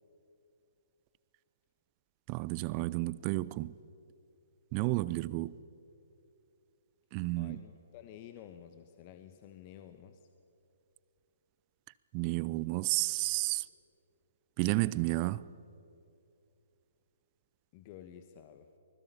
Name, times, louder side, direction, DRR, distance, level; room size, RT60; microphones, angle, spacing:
voice 1, 2.3-3.7 4.7-5.5 7.1-7.6 12.1-13.6 14.6-15.4, right 20 dB, 35° right, 0.5 m, -31 dB
voice 2, 7.4-10.3 17.7-18.7, left 10 dB, 35° left, 1.2 m, -51 dB
24.5 x 20.5 x 6.9 m
figure-of-eight pair, 125°, 0 cm